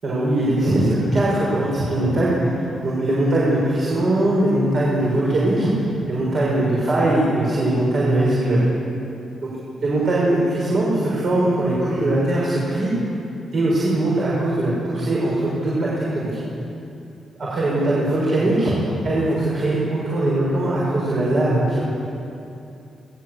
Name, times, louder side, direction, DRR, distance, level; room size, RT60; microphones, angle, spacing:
voice 1, 0.0-2.5 2.8-8.6 9.4-9.5 9.8-12.9 13.5-16.3 17.4-18.7 19.0-21.8, right 1 dB, 45° right, -6 dB, 6.5 m, -20 dB
28.0 x 18.5 x 8.3 m, 2.7 s
wide cardioid pair, 155°, 0 cm